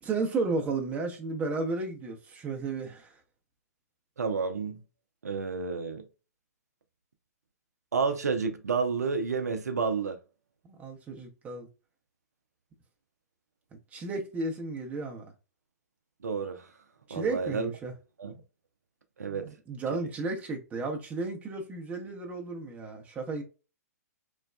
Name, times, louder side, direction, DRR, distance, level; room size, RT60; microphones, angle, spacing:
voice 1, 0.0-3.2 10.6-11.7 13.9-15.3 17.1-17.9 19.7-23.4, right 3 dB, 15° right, 0.7 m, -33 dB
voice 2, 4.2-4.8 5.2-6.0 7.9-10.2 16.2-16.7 17.1-17.7 18.2-18.3 19.2-19.6, right 5 dB, 75° right, 0.5 m, -30 dB
3.1 x 2.2 x 2.2 m
figure-of-eight pair, 115°, 9 cm